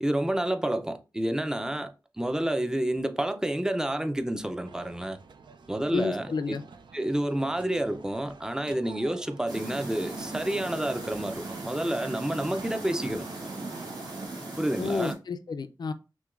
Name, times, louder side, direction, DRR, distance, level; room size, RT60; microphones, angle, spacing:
voice 1, 0.0-5.2 5.7-6.3 6.9-13.3 14.6-15.1, right 1 dB, 10° right, 0.4 m, -29 dB
sound 1, 4.6-14.3, right 5 dB, 90° right, 0.4 m, -48 dB
voice 2, 5.9-6.6 14.8-15.9, left 4 dB, 65° left, 0.4 m, -31 dB
sound 2, 9.5-15.1, right 2 dB, 65° right, 1.7 m, -38 dB
5.9 x 2.2 x 2.4 m
wide cardioid pair, 95°, 8 cm